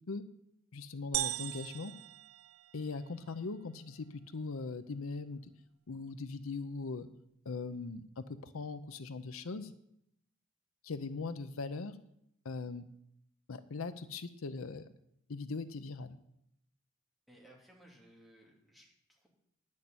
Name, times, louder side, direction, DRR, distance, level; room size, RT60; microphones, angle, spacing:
voice 1, 0.7-1.9 2.7-5.5 5.9-7.1 7.5-9.7 10.8-12.0 12.4-12.9 13.5-14.9 15.3-16.2, left 4 dB, 80° left, 12 dB, 0.7 m, -40 dB
sound 1, 1.1-3.1, right 15 dB, 80° right, 0.3 m, -38 dB
voice 2, 17.3-19.3, right 1 dB, ahead, -3 dB, 2.7 m, -60 dB
10.0 x 6.4 x 8.6 m, 0.76 s
head